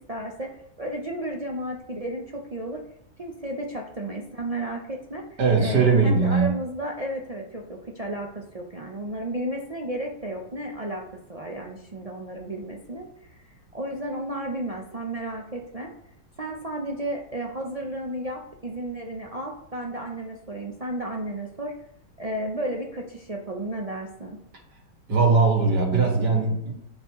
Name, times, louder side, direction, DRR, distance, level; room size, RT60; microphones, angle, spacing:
voice 1, 0.0-2.8 3.2-5.2 5.6-11.0 11.3-13.5 13.7-15.9 16.4-21.7 22.2-24.4, right 1 dB, 50° right, 0 dB, 0.4 m, -33 dB
voice 2, 5.4-6.6 25.1-26.7, right 4 dB, 75° right, -1 dB, 2.3 m, -20 dB
10.0 x 5.3 x 3.0 m, 0.75 s
omnidirectional pair, 1.8 m